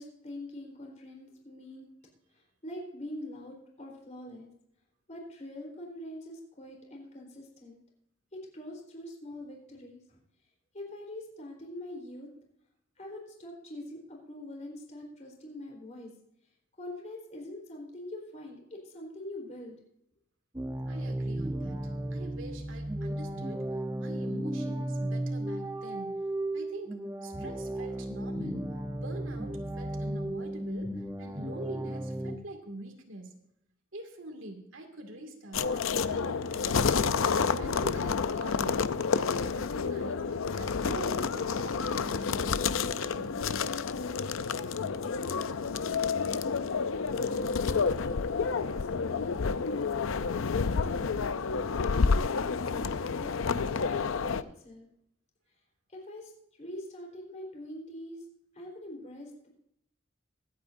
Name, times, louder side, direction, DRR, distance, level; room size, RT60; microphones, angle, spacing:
voice 1, 0.0-1.9 2.3-4.5 5.1-7.8 8.3-10.2 10.7-12.3 13.0-16.1 16.8-19.8 44.7-45.8 46.3-46.6 47.1-49.5 50.6-52.4 52.6-54.9 55.9-56.3 56.6-58.2 58.5-59.5, left 1 dB, 35° left, -1 dB, 3.9 m, -44 dB
sound 1, 20.5-32.4, right 1 dB, 15° right, 0.9 m, -34 dB
voice 2, 20.9-26.3 26.5-33.4 33.9-38.9 39.1-43.4, right 1 dB, 70° right, 3 dB, 2.2 m, -45 dB
sound 2, 35.5-54.4, left 5 dB, 75° left, 0.5 m, -29 dB
24.0 x 8.7 x 2.6 m, 0.78 s
head